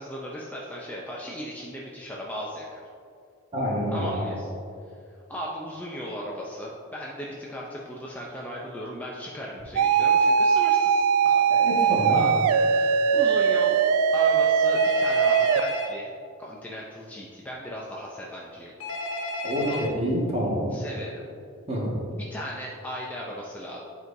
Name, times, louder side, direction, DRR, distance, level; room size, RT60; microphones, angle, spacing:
voice 1, 0.0-2.8 3.9-4.5 4.9-5.0 5.3-11.4 12.1-12.3 12.7-13.8 14.1-16.1 16.4-18.7 19.6-19.8 20.7-21.2 22.1-23.8, equal, 5° left, -4 dB, 0.5 m, -37 dB
voice 2, 3.5-4.4 11.5-12.2 19.4-20.8 21.7-22.0, equal, 30° right, -5 dB, 1.6 m, -27 dB
sound 1, 9.8-15.6, right 6 dB, 90° right, 0.3 m, -21 dB
Telephone, 14.7-15.9 18.8-19.9, left 1 dB, 75° left, 1.2 m, -32 dB
10.5 x 4.6 x 2.7 m, 2.4 s
head